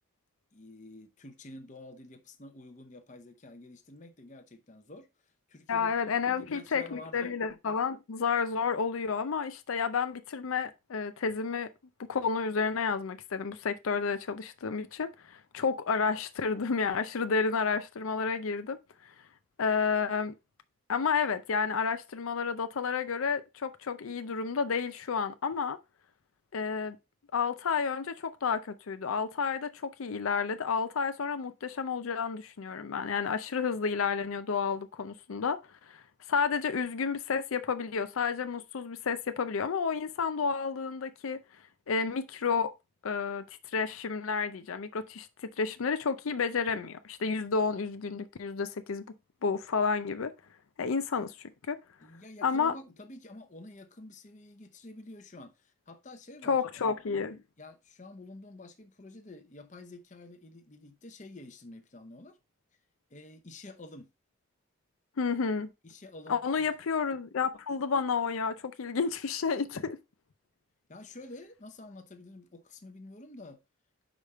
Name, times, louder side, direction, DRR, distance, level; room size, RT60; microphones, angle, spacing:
voice 1, 0.5-5.1 5.5-5.9 6.2-7.3 52.0-57.0 57.6-62.4 63.1-64.1 65.8-66.7 70.9-73.6, left 2 dB, 35° left, 0.8 m, -49 dB
voice 2, 5.7-11.7 12.1-18.8 19.0-19.1 19.6-20.3 20.9-25.8 26.5-27.0 27.3-36.0 36.3-41.4 41.9-42.7 43.0-45.3 45.6-49.0 49.4-50.3 50.8-51.8 52.4-52.7 56.4-57.4 65.2-65.7 66.3-70.0, left 5 dB, 90° left, 0.5 m, -31 dB
5.1 x 4.9 x 4.2 m
head